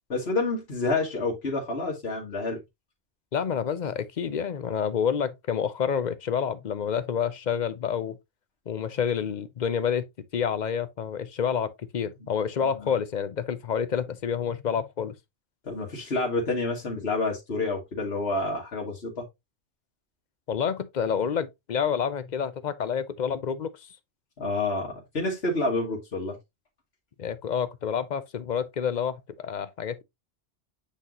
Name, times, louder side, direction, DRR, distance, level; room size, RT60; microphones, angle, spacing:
voice 1, 0.1-2.6 12.6-12.9 15.7-19.3 24.4-26.4, left 2 dB, 65° left, 1.9 m, -28 dB
voice 2, 3.3-8.2 8.7-10.1 10.3-15.1 20.5-23.7 27.2-30.0, left 7 dB, 50° left, 0.7 m, -28 dB
8.3 x 3.9 x 2.9 m
omnidirectional pair, 1.1 m